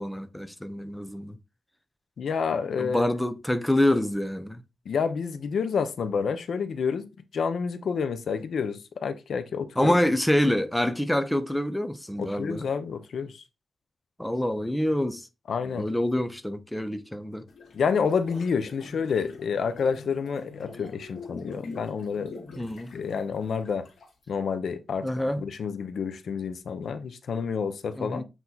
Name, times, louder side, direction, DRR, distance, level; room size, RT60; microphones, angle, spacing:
voice 1, 0.0-1.4 2.8-4.6 9.8-12.7 14.2-15.3 15.7-17.5 22.6-22.9 25.0-25.4 28.0-28.2, left 1 dB, 5° left, 0.6 m, -26 dB
voice 2, 2.2-3.1 4.9-7.1 7.3-9.9 12.2-13.4 15.5-15.9 17.7-22.3 22.9-23.9 24.3-25.1 25.4-28.2, left 6 dB, 70° left, 0.7 m, -29 dB
sound 1, 17.5-24.2, left 4 dB, 90° left, 2.1 m, -45 dB
8.0 x 3.0 x 3.9 m
wide cardioid pair, 150°, 0 cm